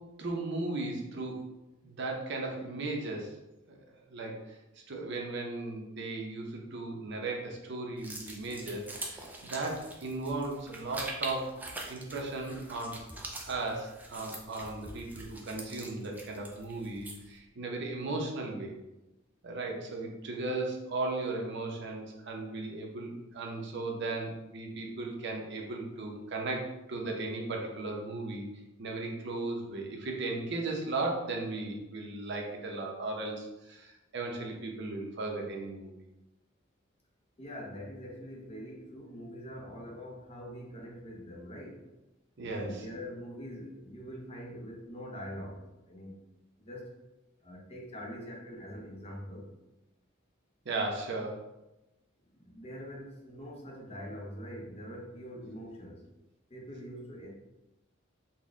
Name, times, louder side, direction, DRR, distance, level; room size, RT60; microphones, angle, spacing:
voice 1, 0.2-1.4 1.8-3.4 3.7-3.8 4.1-4.6 4.9-11.6 11.9-13.0 13.4-18.7 19.4-28.5 28.8-35.9 42.4-42.8 50.6-51.5, right 2 dB, 60° right, 0 dB, 0.6 m, -36 dB
sound 1, 8.0-17.4, right 2 dB, 10° right, 0.4 m, -44 dB
voice 2, 37.4-41.9 42.4-46.2 46.6-47.0 47.4-49.5 52.3-56.0 56.5-57.3, equal, 30° left, -1 dB, 0.6 m, -44 dB
4.0 x 2.1 x 3.5 m, 0.98 s
head